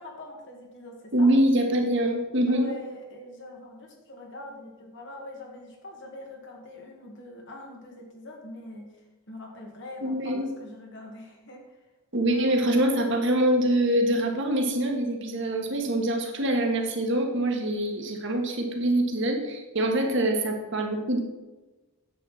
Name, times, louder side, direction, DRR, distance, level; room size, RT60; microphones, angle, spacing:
voice 1, 0.0-1.3 2.5-11.8 12.2-12.9, left 1 dB, 55° left, 0 dB, 2.0 m, -43 dB
voice 2, 1.1-2.7 10.0-10.5 12.1-21.2, right 1 dB, 55° right, 2 dB, 1.5 m, -24 dB
9.9 x 8.0 x 4.2 m, 1.2 s
head